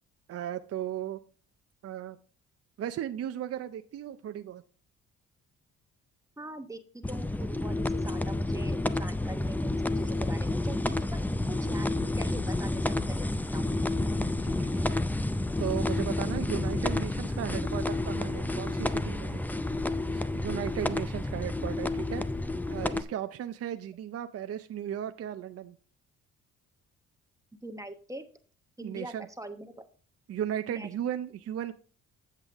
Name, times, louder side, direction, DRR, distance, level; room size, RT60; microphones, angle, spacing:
voice 1, 0.3-1.2 1.8-2.2 2.8-4.6 14.4-15.0 15.6-19.4 20.1-22.2 22.7-25.8 28.8-29.3 30.3-31.7, right 10 dB, 55° right, 8 dB, 0.6 m, -36 dB
voice 2, 6.4-13.2 13.5-13.9 27.6-28.2 28.8-29.9 30.7-30.9, right 1 dB, 10° right, 6 dB, 1.0 m, -43 dB
sound 1, 7.0-23.0, left 2 dB, 5° left, 0.4 m, -30 dB
8.2 x 7.5 x 3.6 m, 0.40 s
cardioid pair, 90°, 30 cm